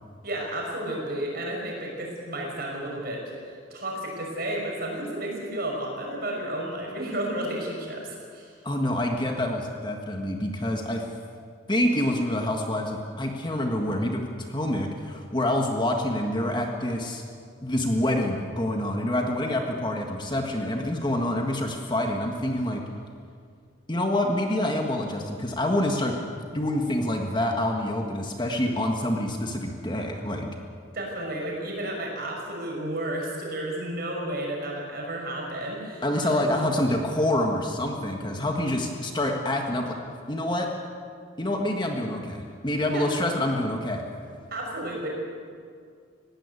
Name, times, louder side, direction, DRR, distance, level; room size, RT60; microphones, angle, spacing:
voice 1, 0.2-8.5 30.9-36.6 42.9-43.1 44.5-45.1, right 1 dB, 50° right, -1 dB, 6.1 m, -32 dB
voice 2, 8.6-11.1 11.7-14.2 14.5-17.2 17.6-22.8 23.9-30.5 36.0-39.9 40.3-40.7 41.4-44.0, left 1 dB, 25° left, 2 dB, 1.6 m, -27 dB
20.0 x 16.5 x 8.4 m, 2.2 s
head